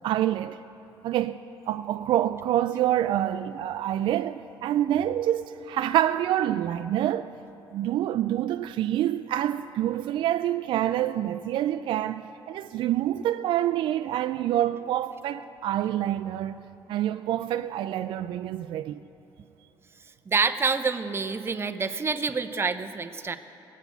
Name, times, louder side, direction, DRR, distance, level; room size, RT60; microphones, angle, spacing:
voice 1, 0.0-0.6 1.0-7.3 7.7-16.6 16.9-19.0, right 12 dB, 65° right, 0.4 m, -27 dB
voice 2, 20.3-23.4, right 4 dB, 30° right, 0.6 m, -27 dB
19.0 x 8.3 x 8.2 m
cardioid pair, 95°, 9 cm